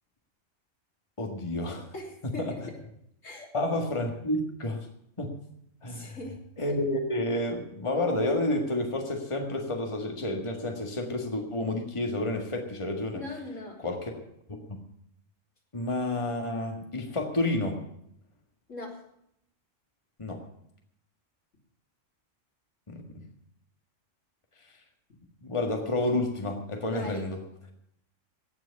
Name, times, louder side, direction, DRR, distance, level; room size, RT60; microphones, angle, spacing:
voice 1, 1.2-1.9 2.4-2.5 3.5-4.9 5.2-5.4 5.8-6.2 6.6-13.2 13.8-14.1 14.5-14.8 15.7-17.8 20.2-20.4 22.9-23.2 25.4-27.4, left 1 dB, 25° left, 3 dB, 1.8 m, -30 dB
voice 2, 1.9-2.8 3.2-3.5 5.9-6.4 13.1-13.8 18.7-19.0 26.9-27.3, left 2 dB, 80° left, -1 dB, 3.6 m, -40 dB
17.0 x 6.2 x 9.5 m, 0.72 s
omnidirectional pair, 1.3 m